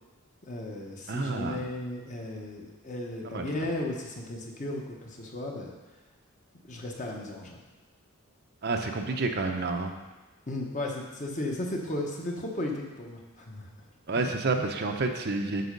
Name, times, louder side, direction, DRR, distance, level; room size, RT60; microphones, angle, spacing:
voice 1, 0.5-5.7 6.7-7.6 10.5-13.7 14.1-14.3, left 1 dB, 35° left, 0 dB, 1.2 m, -35 dB
voice 2, 1.1-1.6 3.2-3.5 8.6-9.9 14.1-15.7, right 3 dB, 50° right, 4 dB, 0.7 m, -29 dB
8.1 x 5.5 x 5.3 m, 1.2 s
head